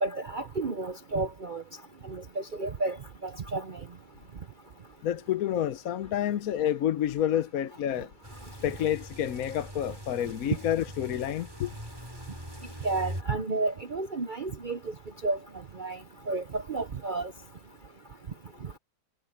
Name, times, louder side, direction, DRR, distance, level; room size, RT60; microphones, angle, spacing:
voice 1, 0.0-1.6 2.0-3.0 3.2-3.8 12.8-14.9 15.2-15.4 15.7-16.0 16.3-17.3, right 3 dB, 50° right, 0.5 m, -31 dB
voice 2, 5.0-8.1 8.6-11.7, left 10 dB, 60° left, 1.0 m, -29 dB
sound 1, 8.2-13.2, equal, 15° right, 7.8 m, -42 dB
omnidirectional pair, 1.9 m